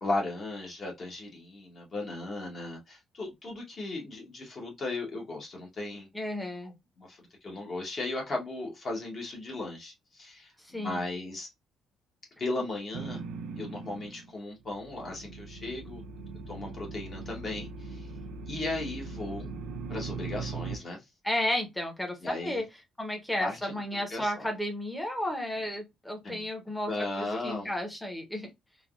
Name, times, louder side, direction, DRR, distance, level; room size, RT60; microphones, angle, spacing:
voice 1, 0.0-6.1 7.0-11.5 12.4-13.2 13.6-16.0 16.5-18.1 18.5-19.5 19.9-21.0 22.2-22.6 23.4-23.8 24.1-24.5 26.2-26.4 26.8-27.7, left 2 dB, 35° left, 0.9 m, -36 dB
voice 2, 6.1-6.7 10.6-11.0 21.2-22.6 23.0-28.5, left 1 dB, 5° left, 0.8 m, -33 dB
sound 1, 12.9-14.4 14.6-20.8, right 4 dB, 85° right, 0.4 m, -40 dB
3.3 x 2.2 x 2.4 m
cardioid pair, 165°, 0 cm